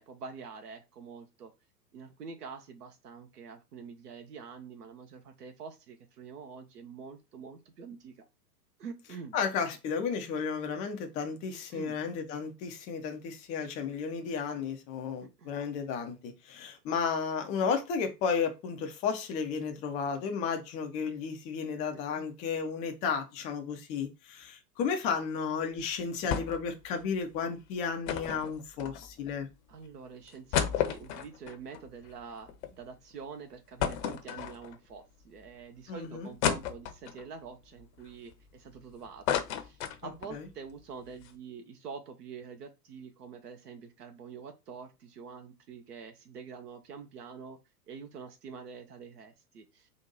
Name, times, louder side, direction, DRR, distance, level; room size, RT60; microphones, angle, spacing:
voice 1, 0.0-1.5 1.9-8.2 8.8-9.4 11.7-12.0 15.4-15.5 22.1-22.3 29.7-47.6 47.9-49.9, right 5 dB, 70° right, 1.0 m, -46 dB
voice 2, 9.3-29.5 35.9-36.3 40.0-40.5, left 6 dB, 15° left, 0.4 m, -33 dB
sound 1, 26.3-26.7 27.0-27.1 28.1-29.3 29.9-30.0 30.3-32.7 33.1-33.2 33.8-34.9 35.5-35.6 36.4-37.3 37.8-38.8 39.0-40.4 40.7-40.8 41.1-41.3, left 9 dB, 45° left, 0.7 m, -32 dB
3.9 x 2.5 x 3.8 m
figure-of-eight pair, 100°, 49 cm